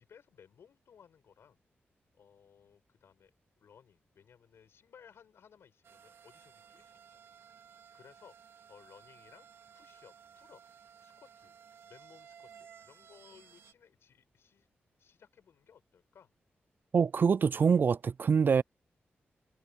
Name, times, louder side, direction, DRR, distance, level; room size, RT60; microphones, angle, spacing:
voice 1, 0.0-1.6 2.1-3.3 3.6-7.4 7.9-9.5 9.7-10.6 11.0-11.5 11.8-14.7 15.0-16.3, left 7 dB, 85° left, 6.8 m, -60 dB
sound 1, 5.8-13.7, right 7 dB, 85° right, 3.9 m, -57 dB
voice 2, 16.9-18.6, right 6 dB, 55° right, 0.4 m, -25 dB
cardioid pair, 75°, 4 cm